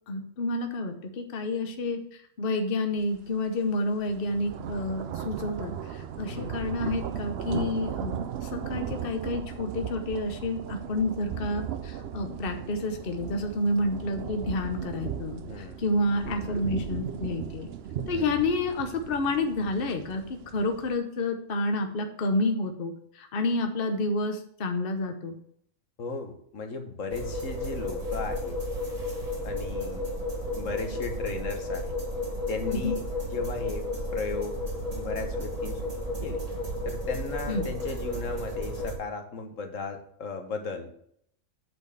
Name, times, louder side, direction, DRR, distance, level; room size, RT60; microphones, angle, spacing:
voice 1, 0.1-8.1 8.4-17.7 18.1-20.2 20.5-25.4 32.7-32.9 37.5-37.6, left 2 dB, 50° left, 5 dB, 1.0 m, -29 dB
sound 1, 3.1-3.3 3.7-21.0, right 9 dB, 60° right, 0.7 m, -37 dB
voice 2, 15.4-15.8 18.1-18.4 26.0-28.6 29.4-30.1 30.5-31.9 32.5-33.9 34.1-34.5 34.9-35.9 36.2-36.4 36.8-40.9, left 4 dB, 75° left, 5 dB, 1.5 m, -36 dB
sound 2, 27.1-38.9, left 1 dB, 30° right, 1.8 m, -33 dB
8.6 x 4.5 x 6.7 m, 0.67 s
omnidirectional pair, 1.4 m